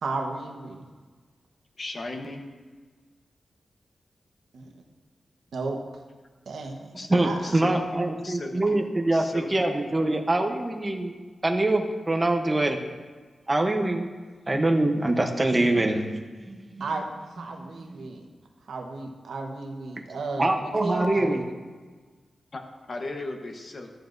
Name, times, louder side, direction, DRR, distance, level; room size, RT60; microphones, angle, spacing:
voice 1, 0.0-0.9 4.5-4.7 5.5-5.8 6.5-7.5 16.8-18.3 18.6-21.4, right 3 dB, 90° right, 2 dB, 1.1 m, -34 dB
voice 2, 1.8-2.4 6.9-8.8 9.1-9.8 22.5-22.6 22.9-23.9, left 2 dB, 40° left, 3 dB, 1.0 m, -37 dB
voice 3, 7.1-12.8 13.5-14.1 14.5-16.1 16.5-16.8 20.4-21.4, right 2 dB, 15° right, 3 dB, 0.8 m, -24 dB
14.0 x 9.1 x 2.6 m, 1.4 s
wide cardioid pair, 175°, 0 cm